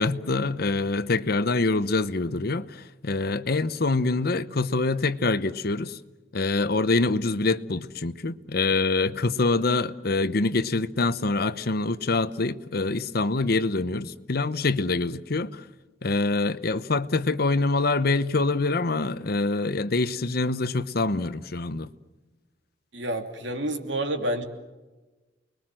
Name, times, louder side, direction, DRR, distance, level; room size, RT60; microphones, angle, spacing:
voice 1, 0.0-6.0 6.3-15.6 16.0-21.9, left 3 dB, 55° left, 0.9 m, -25 dB
voice 2, 22.9-24.4, right 1 dB, 85° right, 2.8 m, -29 dB
29.5 x 21.5 x 7.6 m
head